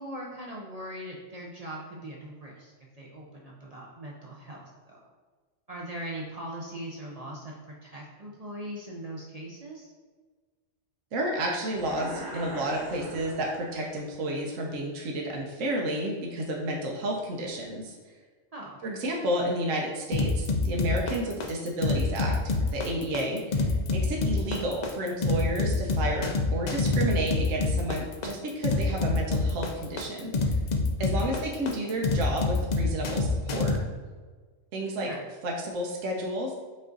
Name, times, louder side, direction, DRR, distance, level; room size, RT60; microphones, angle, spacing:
voice 1, 0.0-2.7 3.0-5.0 5.7-9.9 18.5-18.8 31.0-31.4 35.0-35.3, right 1 dB, 45° right, -3 dB, 0.5 m, -40 dB
voice 2, 11.1-17.9 18.8-30.3 31.0-33.7 34.7-35.1 35.4-36.5, right 1 dB, 75° right, -1 dB, 1.1 m, -31 dB
sound 1, 11.7-14.0, right 1 dB, 15° right, 1.2 m, -40 dB
sound 2, 20.1-33.8, left 3 dB, 70° left, 0.4 m, -26 dB
5.5 x 2.5 x 3.8 m, 1.4 s
omnidirectional pair, 1.3 m